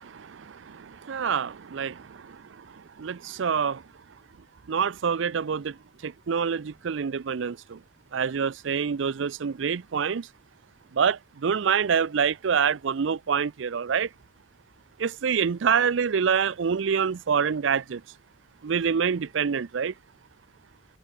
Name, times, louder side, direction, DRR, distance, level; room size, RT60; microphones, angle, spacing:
voice 1, 0.2-2.4 3.0-3.8 4.7-5.8 6.0-7.8 8.1-10.3 10.9-14.1 15.0-18.0 18.6-19.9, right 6 dB, 70° right, 0.5 m, -26 dB
head